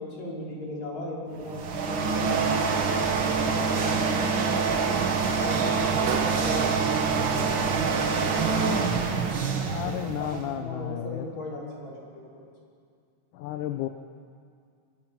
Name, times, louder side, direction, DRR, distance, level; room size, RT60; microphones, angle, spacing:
voice 1, 0.0-2.7 3.3-5.0 5.4-8.7 9.5-12.5, equal, 60° left, -4 dB, 6.4 m, -37 dB
sound 1, 1.4-10.6, right 5 dB, 45° right, 1.9 m, -26 dB
Sliding door, 4.1-8.0, right 8 dB, 80° right, 2.5 m, -37 dB
voice 2, 9.7-11.3 13.3-13.9, left 12 dB, 85° left, 7 dB, 2.3 m, -32 dB
25.0 x 23.0 x 6.1 m, 2.2 s
omnidirectional pair, 3.6 m